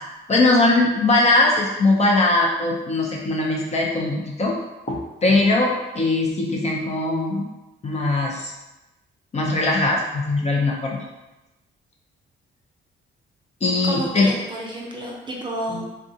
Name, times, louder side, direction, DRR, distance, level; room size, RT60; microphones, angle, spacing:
voice 1, 0.3-4.5 4.9-7.4 7.8-8.5 9.3-11.0 13.6-14.3 15.7-15.8, left 2 dB, 35° left, -2 dB, 0.6 m, -20 dB
voice 2, 13.8-15.8, right 1 dB, 25° right, -2 dB, 0.6 m, -30 dB
3.7 x 2.3 x 2.7 m, 1.0 s
cardioid pair, 120°, 20 cm